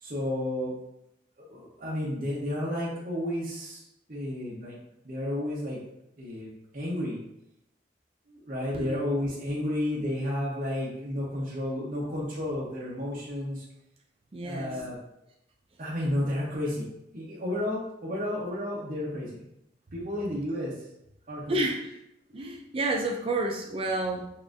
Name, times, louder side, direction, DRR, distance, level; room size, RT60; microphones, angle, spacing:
voice 1, 0.0-0.7 1.5-3.8 4.1-4.8 5.0-5.8 6.2-7.2 8.3-13.7 14.4-15.0 15.8-19.5 19.9-20.7 21.3-21.6, left 1 dB, 50° right, -6 dB, 0.8 m, -32 dB
voice 2, 14.3-14.8 21.5-22.0 22.3-24.3, right 2 dB, 30° right, 1 dB, 0.4 m, -30 dB
5.4 x 2.5 x 2.6 m, 0.83 s
head